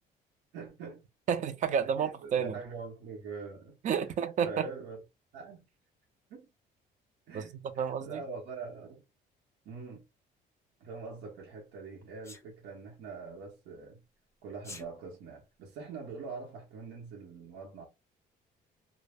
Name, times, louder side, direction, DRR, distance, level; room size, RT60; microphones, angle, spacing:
voice 1, 0.5-1.1 2.0-3.8 4.0-4.1 4.4-5.0 5.3-5.6 6.3-6.5 7.3-9.0 9.6-10.0 10.8-14.0 14.4-17.8, right 4 dB, 80° right, 0.8 m, -44 dB
voice 2, 1.3-2.5 3.8-4.7 7.3-8.2, right 7 dB, 45° right, 0.5 m, -30 dB
Sneeze, 12.2-12.5 14.5-14.9, left 3 dB, 15° left, 0.5 m, -46 dB
2.1 x 2.0 x 3.3 m
cardioid pair, 110°, 17 cm